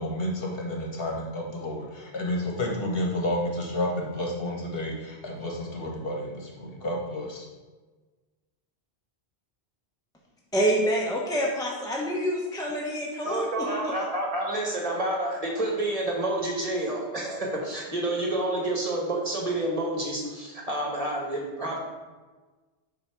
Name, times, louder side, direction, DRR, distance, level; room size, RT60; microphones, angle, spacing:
voice 1, 0.0-7.5, left 1 dB, 60° left, -1 dB, 1.3 m, -31 dB
voice 2, 10.5-13.9, equal, 5° left, -3 dB, 0.6 m, -27 dB
voice 3, 13.2-21.8, right 1 dB, 35° right, -2 dB, 1.3 m, -29 dB
7.6 x 2.8 x 5.7 m, 1.3 s
omnidirectional pair, 1.1 m